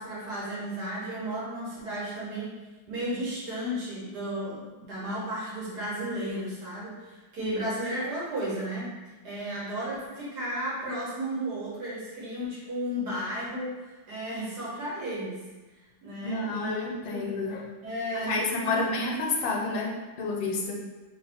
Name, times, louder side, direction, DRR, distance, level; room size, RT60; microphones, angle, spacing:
voice 1, 0.0-2.5 2.9-8.9 9.2-15.4 16.0-17.2 17.8-18.8, equal, 60° right, -7 dB, 1.8 m, -34 dB
voice 2, 16.2-17.7 18.1-20.8, left 3 dB, 85° left, 0 dB, 1.4 m, -30 dB
3.4 x 2.8 x 3.5 m, 1.2 s
omnidirectional pair, 2.1 m